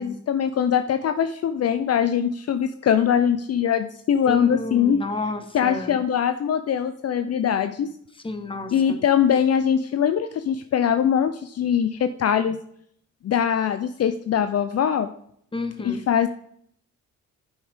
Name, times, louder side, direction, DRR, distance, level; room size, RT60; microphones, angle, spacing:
voice 1, 0.0-5.0 5.5-7.9 8.7-12.6 13.2-15.1 15.8-16.3, left 8 dB, 55° left, 10 dB, 0.6 m, -22 dB
voice 2, 4.3-6.0 8.2-9.0 15.5-16.0, left 3 dB, 15° left, 8 dB, 1.4 m, -31 dB
9.8 x 8.0 x 3.6 m, 0.66 s
cardioid pair, 95°, 30 cm